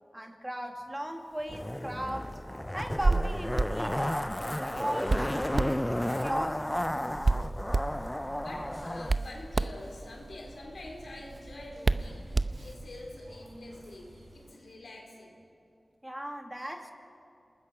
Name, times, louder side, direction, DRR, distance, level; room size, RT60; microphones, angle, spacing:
voice 1, 0.1-2.4 2.7-5.5 6.2-7.0 16.0-16.9, equal, 15° right, 4 dB, 2.2 m, -37 dB
Zipper (clothing), 1.5-9.1 9.4-9.5, left 1 dB, 15° left, 0.5 m, -33 dB
Hands, 2.8-13.0, right 3 dB, 55° right, 0.7 m, -32 dB
sound 1, 6.7-14.5, right 2 dB, 75° right, 6.1 m, -55 dB
voice 2, 8.3-15.4, left 1 dB, 90° left, 0 dB, 4.5 m, -46 dB
28.5 x 20.0 x 5.9 m, 2.6 s
wide cardioid pair, 60°, 0 cm